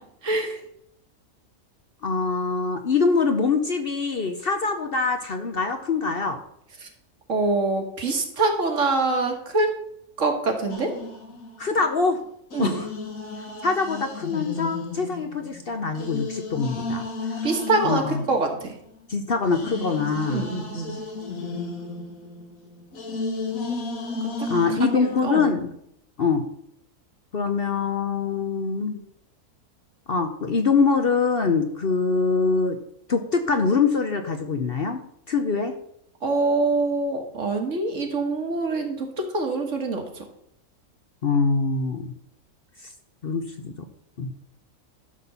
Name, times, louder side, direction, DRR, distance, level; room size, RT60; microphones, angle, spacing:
voice 1, 0.2-0.6 6.8-6.9 7.3-9.7 10.2-10.9 12.5-12.8 17.4-18.7 20.3-21.0 24.4-24.5 24.8-25.5 36.2-40.2, right 3 dB, 60° right, 4 dB, 1.9 m, -25 dB
voice 2, 2.0-6.4 11.6-12.2 12.6-12.9 13.6-17.5 17.8-18.2 19.1-20.5 24.5-25.7 26.2-26.5 27.3-29.0 30.1-32.8 33.1-35.0 35.3-35.7 41.2-42.1 43.2-43.7 44.2-44.3, left 4 dB, 50° left, 6 dB, 0.9 m, -24 dB
sound 1, 10.7-11.9 12.5-19.0 19.5-25.4, left 3 dB, 70° left, 1.7 m, -34 dB
12.5 x 4.2 x 6.9 m, 0.73 s
omnidirectional pair, 1.5 m